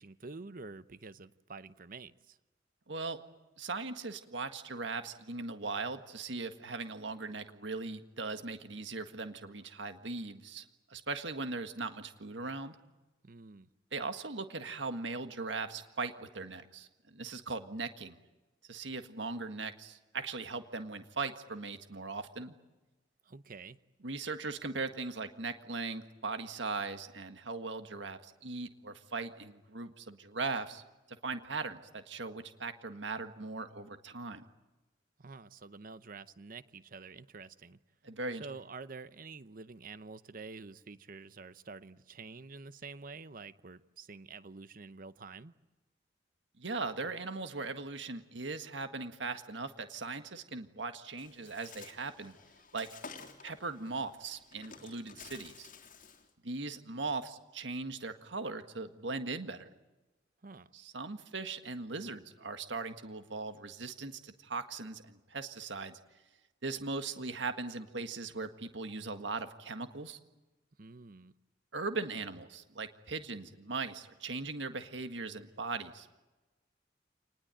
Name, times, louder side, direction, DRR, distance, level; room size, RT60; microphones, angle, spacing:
voice 1, 0.0-2.4 13.2-13.7 23.2-23.8 35.2-37.8 38.4-45.5 60.4-60.7 70.8-71.3, right 4 dB, 50° right, 13 dB, 0.8 m, -48 dB
voice 2, 2.9-3.2 3.6-10.6 10.9-12.7 13.9-18.2 18.7-22.5 24.0-30.8 31.2-34.4 38.0-38.5 46.6-52.3 52.7-52.9 53.4-55.7 56.4-59.7 60.7-66.0 66.6-70.2 71.7-76.1, right 3 dB, 80° right, 8 dB, 1.7 m, -39 dB
Bird, 51.2-56.3, left 5 dB, 45° left, 3.1 m, -52 dB
28.0 x 20.0 x 9.1 m, 1.1 s
head